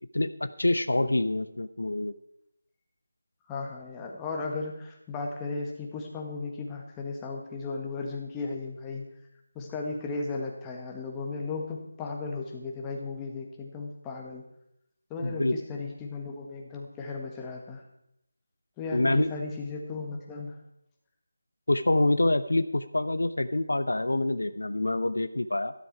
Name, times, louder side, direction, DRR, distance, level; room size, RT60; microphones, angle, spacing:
voice 1, 0.1-2.1 15.2-15.6 18.9-19.3 21.7-25.7, left 2 dB, 80° left, 12 dB, 0.9 m, -26 dB
voice 2, 3.5-9.1 9.5-14.5 15.1-17.8 18.8-20.6, left 3 dB, 10° left, 0 dB, 1.6 m, -36 dB
13.0 x 12.0 x 4.7 m, 0.78 s
figure-of-eight pair, 165°, 0 cm